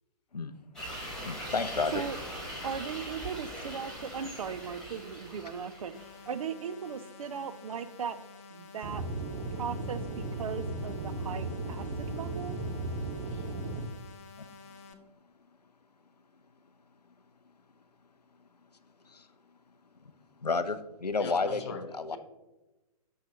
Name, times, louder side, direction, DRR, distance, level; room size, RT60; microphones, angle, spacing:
sound 1, 0.7-6.3, equal, 5° left, 1.6 m, -41 dB
voice 1, 1.2-2.0 14.4-14.5 19.1-19.3 20.4-21.6 22.0-22.2, left 4 dB, 90° left, 11 dB, 0.5 m, -31 dB
voice 2, 2.6-8.2 8.5-9.0 9.5-12.6, right 7 dB, 60° right, 13 dB, 0.4 m, -38 dB
sound 2, 5.9-14.9, left 4 dB, 25° left, 0.4 m, -51 dB
Aircraft / Engine, 8.8-13.8, right 2 dB, 35° right, 1.0 m, -36 dB
voice 3, 13.2-13.5 21.2-21.8 22.1-22.2, left 4 dB, 45° left, 6 dB, 0.9 m, -42 dB
6.3 x 5.7 x 2.8 m, 1.0 s
figure-of-eight pair, 125°, 20 cm